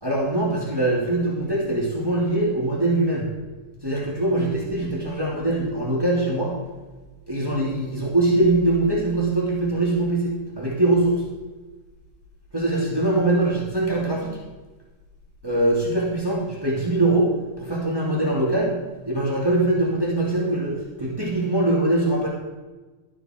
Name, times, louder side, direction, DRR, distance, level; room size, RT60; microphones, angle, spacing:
voice 1, 0.0-3.2 3.8-6.5 7.3-11.2 12.5-14.3 15.4-17.3 17.6-18.8 19.0-22.3, right 2 dB, 35° right, -4 dB, 0.4 m, -22 dB
12.5 x 12.0 x 4.5 m, 1.2 s
omnidirectional pair, 5.6 m